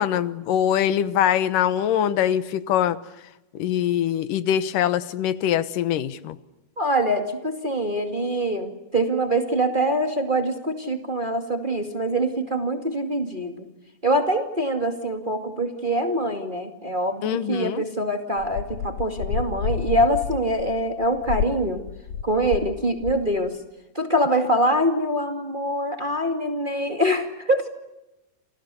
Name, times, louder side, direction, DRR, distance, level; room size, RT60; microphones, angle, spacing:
voice 1, 0.0-3.0 3.5-6.4 17.2-17.8, left 10 dB, 90° left, 14 dB, 2.8 m, -23 dB
voice 2, 6.8-13.7 14.0-21.8 22.2-23.6 23.9-27.7, right 1 dB, 20° right, 5 dB, 1.9 m, -24 dB
sound 1, 18.4-22.7 23.0-23.4, left 7 dB, 60° left, 2.0 m, -30 dB
29.0 x 27.5 x 6.9 m, 0.97 s
omnidirectional pair, 3.7 m